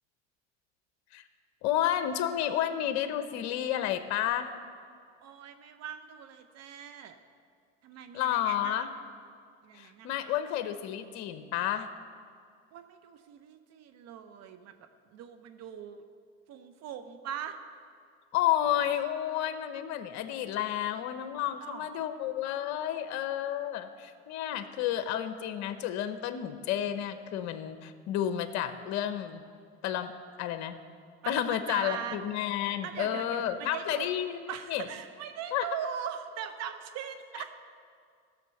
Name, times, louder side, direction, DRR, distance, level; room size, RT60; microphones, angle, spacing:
voice 1, 1.6-4.5 8.1-8.9 9.7-11.9 18.3-29.4 29.8-30.1 30.4-30.8 31.3-34.8 35.5-35.7, left 11 dB, 60° left, 10 dB, 0.9 m, -31 dB
voice 2, 5.2-7.2 7.8-8.9 9.6-10.3 12.7-14.7 15.1-16.0 16.5-17.6 21.4-22.0 31.2-32.2 32.8-34.1 34.5-37.5, right 8 dB, 50° right, 9 dB, 0.8 m, -40 dB
15.0 x 6.6 x 6.8 m, 2.2 s
supercardioid pair, 100°, 32 cm